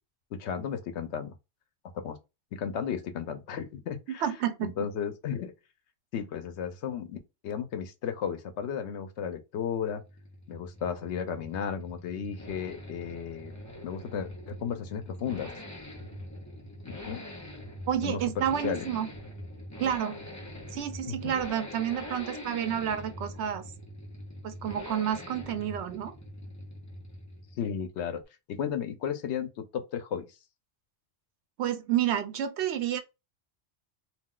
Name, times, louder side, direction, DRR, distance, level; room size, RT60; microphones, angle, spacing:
voice 1, 0.3-1.3 1.9-2.2 2.5-4.2 4.6-5.5 6.1-7.2 7.4-10.0 10.5-13.5 13.8-15.5 16.9-17.2 18.0-18.9 21.1-21.3 27.6-28.2 28.5-30.2, left 7 dB, 75° left, 0.8 m, -34 dB
voice 2, 4.1-4.9 17.9-19.1 19.8-20.2 20.7-23.7 24.4-26.1 31.6-33.0, right 10 dB, 75° right, 0.8 m, -30 dB
sound 1, 9.7-27.8, left 1 dB, 20° left, 0.6 m, -43 dB
2.4 x 2.3 x 3.6 m
omnidirectional pair, 1.2 m